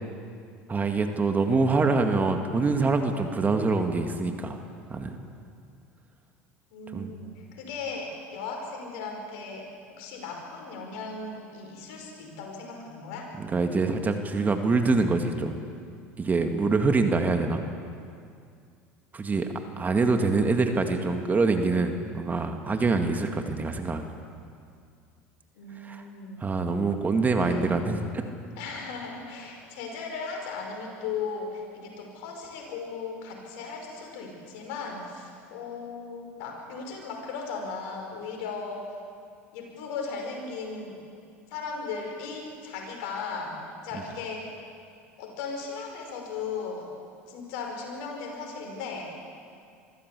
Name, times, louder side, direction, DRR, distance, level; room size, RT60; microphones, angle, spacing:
voice 1, 0.7-4.6 4.9-5.2 6.9-7.1 13.4-15.6 16.2-17.6 19.1-19.5 19.8-24.1 25.8-26.0 26.4-28.2, right 3 dB, 25° right, 5 dB, 2.1 m, -25 dB
voice 2, 6.7-9.7 10.0-13.3 25.5-26.4 27.4-27.7 28.6-38.8 39.5-41.0 41.5-43.6 43.8-44.5 45.2-46.9 47.3-49.1, left 4 dB, 70° left, 1 dB, 5.5 m, -37 dB
23.5 x 15.0 x 8.4 m, 2.3 s
hypercardioid pair, 80°, 7 cm